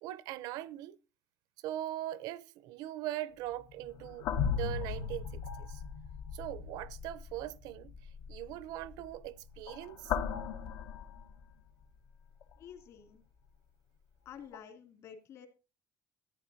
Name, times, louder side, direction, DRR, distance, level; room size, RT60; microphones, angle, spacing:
voice 1, 0.0-1.0 1.6-5.8 6.3-7.9 8.3-10.1, right 14 dB, 80° right, 0.7 m, -41 dB
sound 1, 3.5-11.8 12.4-12.6 14.5-14.6, left 7 dB, 75° left, 1.2 m, -38 dB
voice 2, 12.6-13.2 14.2-15.5, left 8 dB, 50° left, 2.7 m, -50 dB
13.5 x 9.7 x 2.7 m
cardioid pair, 170°, 7 cm